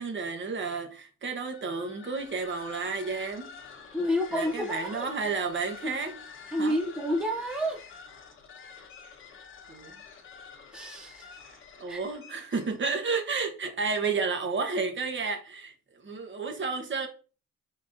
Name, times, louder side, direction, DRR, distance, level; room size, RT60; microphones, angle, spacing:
voice 1, 0.0-3.5 4.3-6.2 6.6-6.8 9.7-10.0 11.5-17.1, right 4 dB, 40° right, 1.0 m, -32 dB
sound 1, 1.5-12.9, left 6 dB, 45° left, 1.1 m, -48 dB
voice 2, 3.9-5.1 5.8-6.0 6.5-7.8 10.7-11.3 11.9-12.0, equal, 5° right, 0.5 m, -29 dB
4.0 x 3.6 x 2.6 m
cardioid pair, 90°, 30 cm